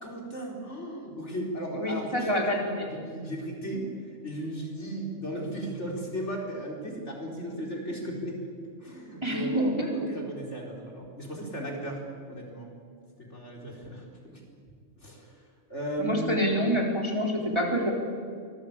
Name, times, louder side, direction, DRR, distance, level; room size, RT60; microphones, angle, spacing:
voice 1, 0.0-2.6 2.9-3.9 4.2-8.4 8.8-12.0 12.3-12.7 13.3-14.4 15.0-15.4 15.7-16.4, right 1 dB, 65° left, 0 dB, 4.8 m, -36 dB
voice 2, 1.7-2.9 9.2-9.9 16.0-17.9, equal, 20° right, 0 dB, 3.8 m, -27 dB
24.5 x 19.5 x 8.8 m, 2.2 s
omnidirectional pair, 1.3 m